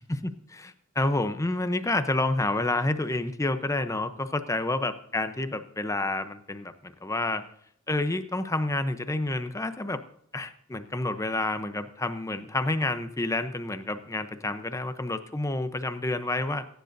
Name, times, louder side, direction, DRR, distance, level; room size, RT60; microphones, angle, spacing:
voice 1, 0.0-7.4 7.9-10.0 10.3-16.6, left 2 dB, 15° left, 10 dB, 0.7 m, -29 dB
21.0 x 10.0 x 2.6 m, 0.69 s
head